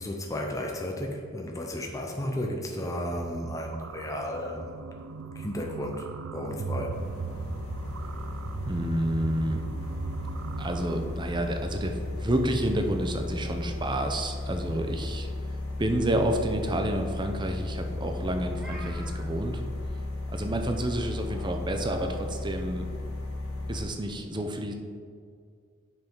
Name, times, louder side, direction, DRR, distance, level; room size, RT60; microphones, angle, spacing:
voice 1, 0.0-4.8 5.3-6.1 6.3-7.0, left 1 dB, 15° left, 1 dB, 0.7 m, -33 dB
sound 1, 3.1-11.1, right 4 dB, 70° right, 0.4 m, -37 dB
sound 2, 6.9-23.8, left 2 dB, 75° left, 1.6 m, -35 dB
voice 2, 8.6-9.6 10.6-15.3 15.8-19.6 20.3-22.9 23.7-24.7, right 1 dB, 20° right, 5 dB, 0.7 m, -29 dB
Meow, 18.1-19.3 21.1-22.2, equal, 5° right, 1.7 m, -47 dB
7.4 x 5.8 x 5.5 m, 2.2 s
head